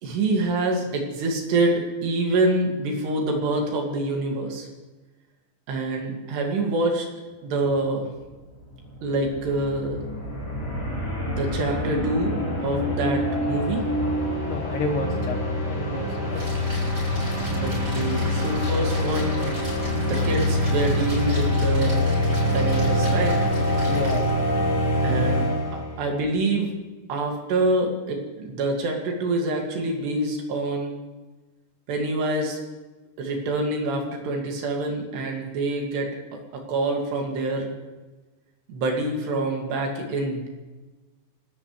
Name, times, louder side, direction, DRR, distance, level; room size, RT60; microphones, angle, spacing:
voice 1, 0.0-4.7 5.7-7.1 7.4-8.1 9.0-10.0 11.2-12.3 12.6-13.8 17.6-19.5 20.0-22.1 22.5-23.5 25.0-25.5 26.0-26.7 27.1-31.0 31.9-32.6 33.2-36.1 36.5-37.7 38.7-40.5, right 2 dB, 85° right, 1 dB, 4.5 m, -26 dB
sound 1, 8.3-8.4 8.6-26.0, left 1 dB, 5° left, 3.7 m, -25 dB
voice 2, 14.3-16.7 21.9-22.1 23.9-24.3, left 2 dB, 80° left, 0 dB, 4.5 m, -31 dB
Splash splatter, 16.3-24.5, equal, 25° right, 7.0 m, -38 dB
29.0 x 13.0 x 3.3 m, 1.2 s
omnidirectional pair, 4.7 m